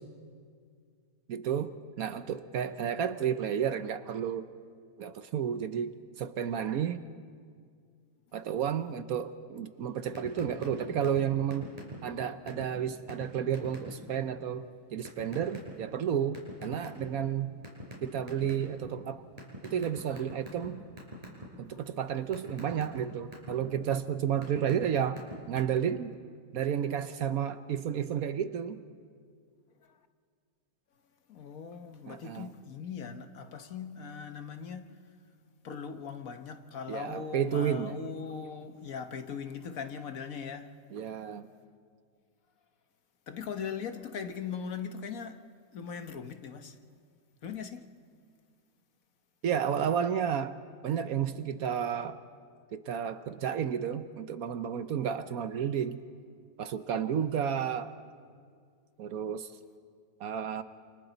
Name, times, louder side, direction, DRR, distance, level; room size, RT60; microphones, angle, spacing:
voice 1, 1.3-4.4 5.0-7.0 8.3-11.7 12.0-17.6 18.0-19.2 19.6-20.8 21.6-25.2 25.5-26.1 26.5-28.8 32.1-32.5 36.9-38.0 40.9-41.5 49.4-50.6 50.8-52.2 52.7-56.0 56.6-57.9 59.0-59.5 60.2-60.6, right 8 dB, 65° right, 1.1 m, -32 dB
sound 1, 10.1-10.7 11.0-11.2 11.5-12.1 12.5-12.6 13.1-13.2 13.5-13.9 15.0-15.7 16.3-17.2 17.6-18.9 19.4-20.7 21.0-21.4 21.8-23.5 24.1-24.9 25.1-25.6, right 1 dB, 20° right, 5.6 m, -42 dB
voice 2, 31.3-35.0 35.6-40.7 43.3-45.4 45.7-46.8 47.4-47.8, left 6 dB, 60° left, 1.4 m, -40 dB
28.5 x 28.5 x 4.0 m
omnidirectional pair, 1.8 m